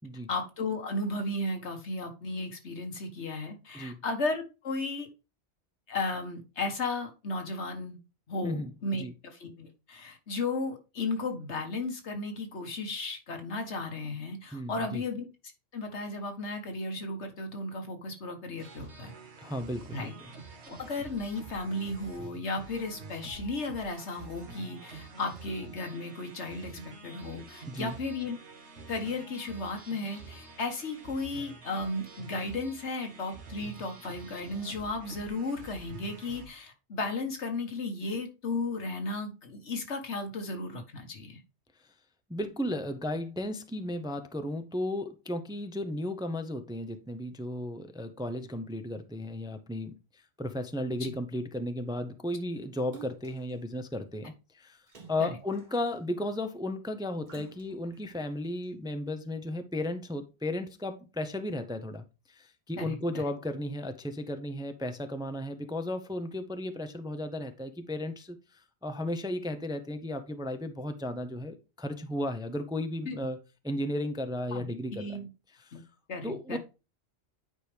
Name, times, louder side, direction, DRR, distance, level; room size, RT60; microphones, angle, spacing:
voice 1, 0.3-5.1 5.9-8.0 8.3-15.3 15.7-19.1 19.9-20.1 20.7-28.4 28.9-41.4 51.0-51.1 55.2-55.3 62.8-63.2 73.1-73.2 74.5-75.3 75.7-75.8 76.1-76.6, left 2 dB, 85° left, 1.7 m, -35 dB
voice 2, 14.5-15.0 19.4-20.1 27.7-28.0 42.3-54.8 55.1-73.4 73.6-75.2 75.7-75.8 76.2-76.6, left 1 dB, 5° right, 0.5 m, -34 dB
sound 1, 18.6-36.5, right 4 dB, 85° right, 1.6 m, -47 dB
Splash splatter, 52.9-53.5 54.9-56.1 57.3-58.0 58.6-58.7, right 4 dB, 45° right, 1.4 m, -50 dB
9.2 x 4.8 x 3.3 m
omnidirectional pair, 1.1 m